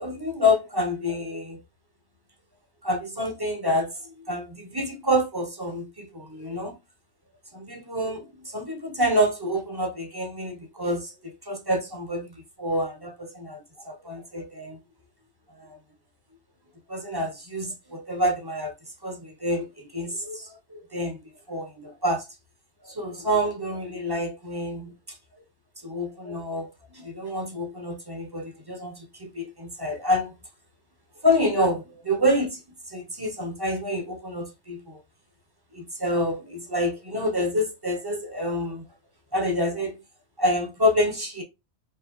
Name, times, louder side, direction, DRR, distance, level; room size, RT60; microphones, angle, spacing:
voice 1, 0.0-1.6 2.8-6.8 7.5-12.3 12.6-14.8 15.6-15.8 16.9-18.7 19.0-21.2 21.5-22.3 22.8-25.2 25.8-30.3 31.2-32.6 32.9-35.0 35.7-38.8 39.3-40.0 40.4-41.4, left 1 dB, 25° right, 0.5 m, -27 dB
4.6 x 2.7 x 3.0 m
omnidirectional pair, 1.5 m